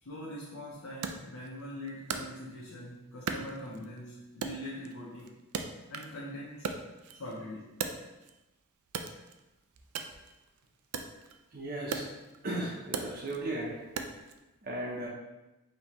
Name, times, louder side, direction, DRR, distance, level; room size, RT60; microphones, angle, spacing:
voice 1, 0.0-5.4 5.9-6.7 7.1-7.7, left 1 dB, 65° left, -4 dB, 0.6 m, -43 dB
Wood, 1.0-2.8 3.3-4.0 4.4-6.2 6.5-8.4 8.9-14.4, right 5 dB, 80° right, 0.4 m, -39 dB
voice 2, 11.5-12.0 12.4-13.7 14.6-15.1, right 1 dB, 40° right, -4 dB, 0.6 m, -35 dB
5.3 x 2.9 x 2.9 m, 1.0 s
head